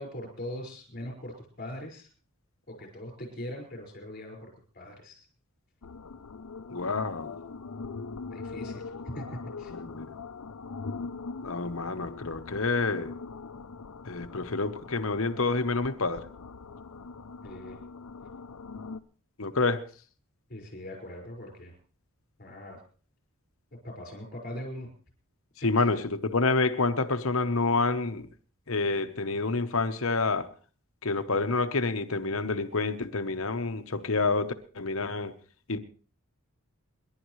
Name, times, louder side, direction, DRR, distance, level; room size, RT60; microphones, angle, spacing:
voice 1, 0.0-2.1 2.7-5.3 8.3-9.7 17.4-17.8 20.5-21.8 22.4-22.8 23.7-24.9, left 1 dB, 40° left, 0 dB, 5.4 m, -41 dB
sound 1, 5.8-19.0, left 4 dB, 85° left, 0.7 m, -42 dB
voice 2, 6.7-7.4 9.7-10.1 11.4-13.1 14.0-16.3 19.4-19.8 25.6-28.3 28.7-30.5 31.0-35.3 35.7-35.8, left 3 dB, 65° left, 8 dB, 1.2 m, -28 dB
28.0 x 11.5 x 3.2 m, 0.39 s
head